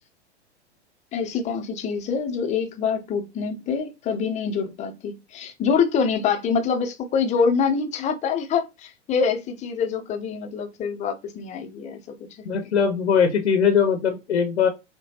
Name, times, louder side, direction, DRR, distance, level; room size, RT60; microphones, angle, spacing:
voice 1, 1.1-12.4, left 6 dB, 20° left, 0.6 m, -25 dB
voice 2, 12.4-14.7, left 7 dB, 75° left, 0.8 m, -20 dB
5.5 x 2.2 x 2.8 m
figure-of-eight pair, 100°, 35 cm